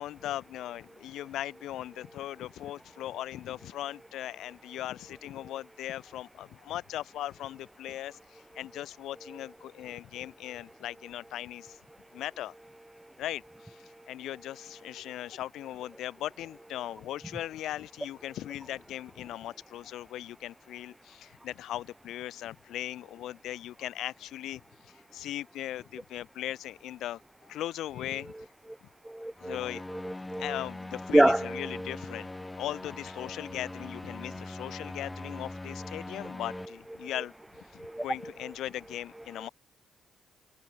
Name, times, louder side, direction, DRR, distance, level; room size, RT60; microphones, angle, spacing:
voice 1, 0.0-11.8 12.1-12.5 13.2-28.3 29.4-29.8 30.4-32.3 32.6-37.3 37.7-39.5, left 13 dB, 80° left, 4.4 m, -39 dB
voice 2, 29.0-29.6 29.9-30.6 31.1-31.9 37.0-37.1 37.8-38.3, right 1 dB, 5° right, 1.0 m, -27 dB
sound 1, 29.4-36.7, left 2 dB, 15° left, 4.3 m, -42 dB
cardioid pair, 90°, 0 cm